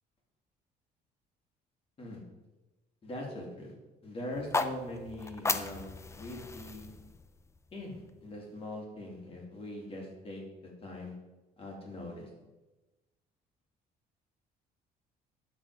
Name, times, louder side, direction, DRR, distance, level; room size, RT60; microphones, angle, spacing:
voice 1, 3.0-3.7 4.0-6.9 7.7-11.1 11.6-12.3, left 1 dB, 35° left, -1 dB, 2.8 m, -42 dB
sound 1, 4.3-8.5, left 3 dB, 15° left, 0.5 m, -37 dB
12.5 x 4.2 x 4.9 m, 1.1 s
cardioid pair, 110°, 17 cm